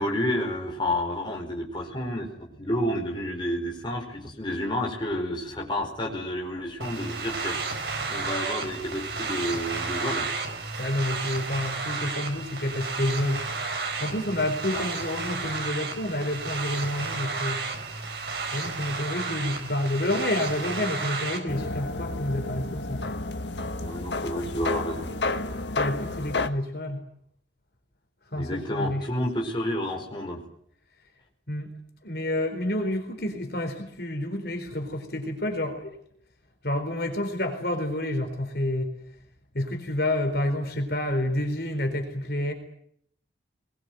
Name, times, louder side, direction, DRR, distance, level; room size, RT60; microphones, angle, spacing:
voice 1, 0.0-2.3 2.6-7.6 8.1-10.3 14.7-14.9 23.8-25.1 28.3-30.4, equal, 25° left, 0 dB, 4.9 m, -30 dB
sound 1, 6.8-21.4, right 4 dB, 60° right, 4.6 m, -32 dB
voice 2, 10.8-13.4 14.0-17.6 18.5-23.0 25.8-27.0 28.3-29.0 31.5-31.7 32.0-36.0 36.6-38.9 39.5-42.5, left 1 dB, 55° left, 5 dB, 4.3 m, -29 dB
sound 2, 21.5-26.5, left 2 dB, 75° left, 1.4 m, -31 dB
23.0 x 21.0 x 9.5 m, 0.67 s
head